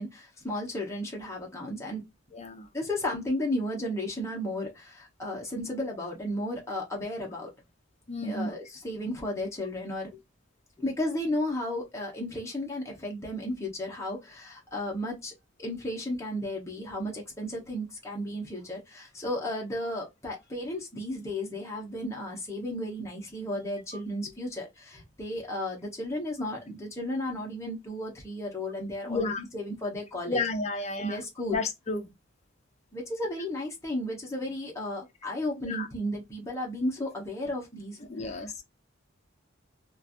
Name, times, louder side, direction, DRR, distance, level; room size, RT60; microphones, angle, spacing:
voice 1, 0.0-2.0 2.7-7.5 8.2-10.2 10.8-15.3 15.6-30.4 31.0-31.6 32.9-38.0 38.2-38.6, left 1 dB, 15° left, 1.0 m, -34 dB
voice 2, 2.3-2.7 8.1-8.5 29.1-29.5 30.3-31.2 31.5-32.0 35.7-35.9 38.1-38.5, left 3 dB, 35° left, 0.6 m, -31 dB
3.1 x 2.5 x 2.4 m
head